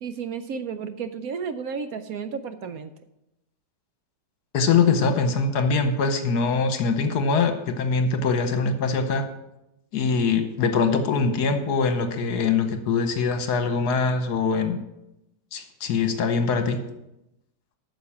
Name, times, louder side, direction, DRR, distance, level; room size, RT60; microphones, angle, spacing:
voice 1, 0.0-2.9, right 6 dB, 70° right, 10 dB, 0.9 m, -32 dB
voice 2, 4.5-9.2 9.9-14.8 15.5-16.8, left 4 dB, 70° left, 8 dB, 1.5 m, -23 dB
9.3 x 6.4 x 7.1 m, 0.89 s
omnidirectional pair, 1.9 m